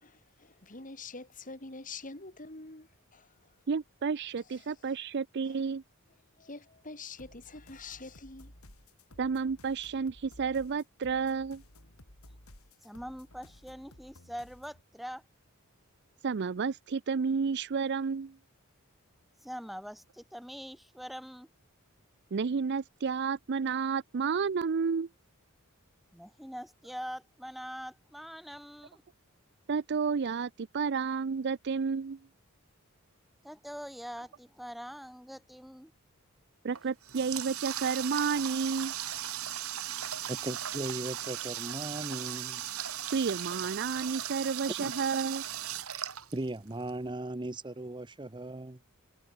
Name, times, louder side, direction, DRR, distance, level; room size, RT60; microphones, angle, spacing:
voice 1, 0.0-3.5 4.5-4.6 5.4-5.6 6.4-8.5, left 3 dB, 40° left, 4.0 m, -46 dB
voice 2, 3.7-5.8 9.2-11.6 16.2-18.4 22.3-25.1 29.7-32.2 36.6-38.9 43.1-45.5, right 5 dB, 50° right, 0.4 m, -31 dB
sound 1, 7.2-14.8, left 1 dB, 80° left, 6.5 m, -55 dB
voice 3, 12.8-15.2 19.4-21.5 26.1-29.0 33.4-35.9, equal, ahead, 4.7 m, -43 dB
Water tap faucet, 36.7-46.9, right 11 dB, 80° right, 5.3 m, -37 dB
voice 4, 40.3-42.6 44.8-44.9 46.3-48.8, right 2 dB, 20° right, 0.8 m, -37 dB
head